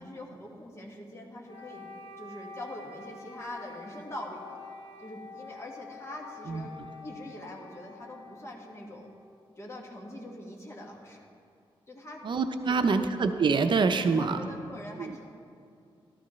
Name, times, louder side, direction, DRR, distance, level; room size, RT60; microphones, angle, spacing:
voice 1, 0.0-1.8 2.2-4.6 5.0-6.7 7.0-9.1 9.6-11.3 11.9-12.2 12.7-13.0 14.0-15.3, left 1 dB, 30° left, -1 dB, 1.8 m, -43 dB
Wind instrument woodwind instrument, 1.4-9.5, left 4 dB, 55° left, 2.2 m, -47 dB
voice 2, 12.2-14.4 15.0-15.1, right 4 dB, 55° right, 7 dB, 0.6 m, -25 dB
14.0 x 12.5 x 3.2 m, 2.4 s
wide cardioid pair, 110°, 10 cm